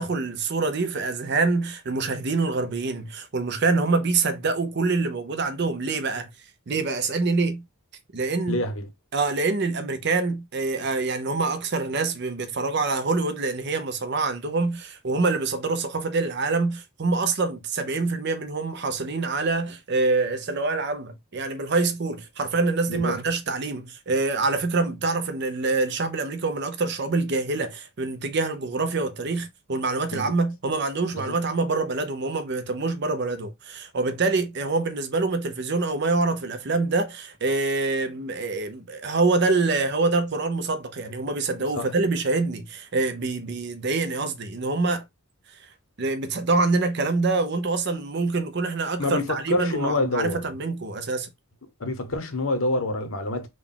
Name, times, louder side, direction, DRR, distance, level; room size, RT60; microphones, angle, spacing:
voice 1, 0.0-6.3 6.7-7.7 8.1-8.6 9.1-45.1 46.0-51.3, right 3 dB, 50° right, 0.6 m, -25 dB
voice 2, 8.5-8.9 22.9-23.2 30.1-30.3 31.1-31.3 41.7-41.9 49.0-50.4 51.8-53.5, left 2 dB, 65° left, 0.9 m, -27 dB
3.8 x 2.3 x 3.6 m
head